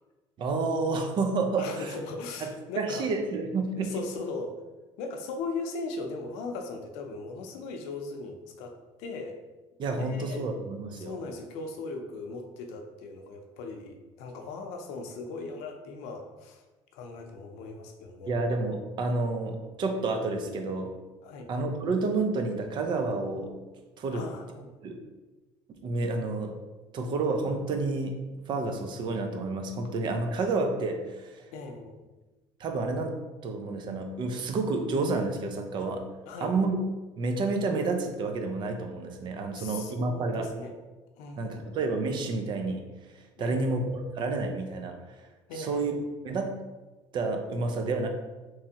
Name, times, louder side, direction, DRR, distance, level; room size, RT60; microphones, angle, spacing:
voice 1, 0.4-1.9 2.4-3.9 9.8-11.2 18.3-20.9 21.5-23.5 24.0-24.3 24.8-25.0 25.8-26.5 26.9-28.2 28.5-31.5 32.6-33.1 33.4-36.1 36.4-36.8 37.2-40.5 41.4-42.8 43.1-43.8 44.1-45.0 45.6-45.9 46.2-46.5 47.1-48.1, right 3 dB, 45° right, 5 dB, 0.5 m, -29 dB
voice 2, 1.6-3.1 3.7-4.6 5.0-9.4 9.8-10.5 11.0-16.6 16.9-18.4 21.2-21.5 24.1-24.7 31.5-32.0 36.3-36.6 39.5-40.7 41.2-41.8 43.4-43.8 45.5-46.0, left 3 dB, 90° left, 4 dB, 0.6 m, -39 dB
3.4 x 3.1 x 2.8 m, 1.2 s
cardioid pair, 130°, 11 cm